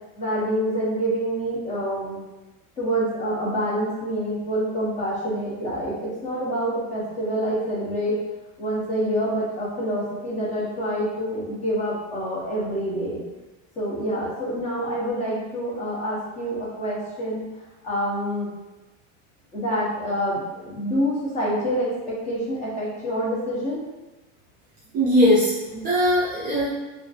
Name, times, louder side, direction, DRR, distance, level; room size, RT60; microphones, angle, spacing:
voice 1, 0.2-2.2 2.8-8.2 8.6-13.2 13.8-17.4 17.8-18.5 19.5-23.8, equal, 20° left, -7 dB, 0.6 m, -27 dB
voice 2, 24.9-26.7, equal, 25° right, -9 dB, 0.4 m, -20 dB
2.4 x 2.4 x 2.3 m, 1.1 s
supercardioid pair, 145°, 38 cm